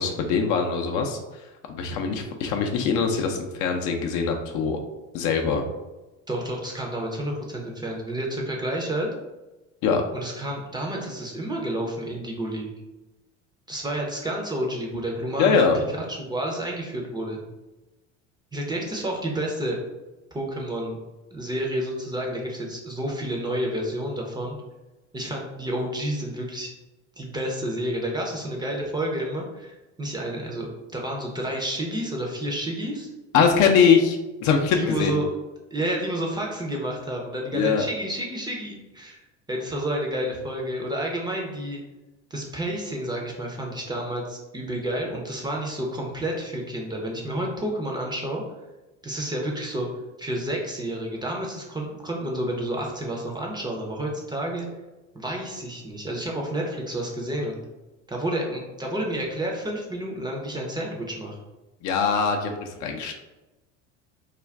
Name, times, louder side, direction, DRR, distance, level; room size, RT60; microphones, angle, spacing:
voice 1, 0.0-1.4 1.7-4.8 5.1-5.6 9.8-10.0 15.4-15.8 33.3-35.2 37.5-37.9 61.8-63.1, left 6 dB, 55° left, 3 dB, 0.5 m, -22 dB
voice 2, 6.3-9.1 10.1-12.7 13.7-15.8 16.1-17.4 18.5-19.8 20.3-21.0 21.3-24.6 25.1-26.7 27.2-33.1 34.7-35.3 35.7-39.2 39.5-41.8 42.3-48.4 49.0-49.9 50.2-54.7 55.1-57.6 58.1-61.4, right 1 dB, 10° right, -1 dB, 0.5 m, -30 dB
2.4 x 2.2 x 3.3 m, 1.1 s
hypercardioid pair, 80°, 37 cm